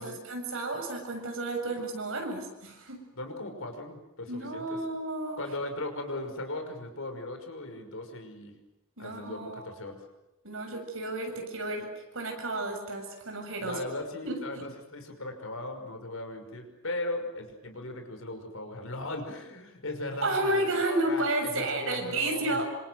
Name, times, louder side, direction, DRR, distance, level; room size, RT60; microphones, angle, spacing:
voice 1, 0.0-3.0 4.3-5.4 9.0-9.7 10.4-11.9 12.1-13.8 14.2-14.6 20.2-22.6, right 2 dB, 65° right, 3 dB, 7.5 m, -32 dB
voice 2, 3.1-4.8 5.4-8.6 9.0-10.0 13.6-22.6, left 2 dB, 65° left, 5 dB, 5.9 m, -38 dB
27.5 x 26.0 x 7.9 m, 0.97 s
head